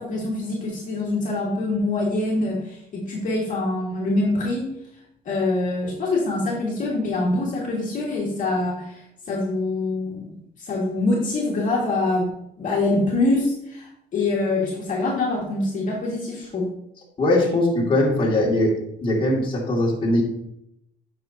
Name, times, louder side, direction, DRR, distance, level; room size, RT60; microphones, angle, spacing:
voice 1, 0.0-4.7 5.3-10.3 10.6-16.7, left 2 dB, 50° left, -3 dB, 2.0 m, -25 dB
voice 2, 17.2-18.7 19.0-20.2, left 1 dB, 30° left, -4 dB, 2.3 m, -20 dB
9.4 x 6.0 x 2.8 m, 0.77 s
cardioid pair, 110°, 17 cm